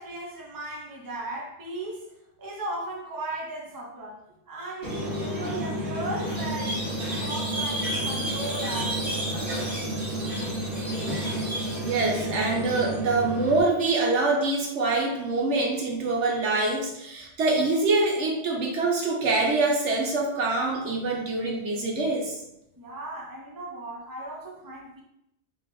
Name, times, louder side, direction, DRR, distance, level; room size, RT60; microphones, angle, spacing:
voice 1, 0.0-2.1 2.4-9.3 22.8-25.0, right 2 dB, 20° right, -2 dB, 0.7 m, -36 dB
Squeak, 4.8-13.6, right 1 dB, 50° right, 1.5 m, -30 dB
voice 2, 11.8-22.4, right 3 dB, 75° right, 0 dB, 1.3 m, -25 dB
4.5 x 2.9 x 3.9 m, 0.83 s
omnidirectional pair, 1.2 m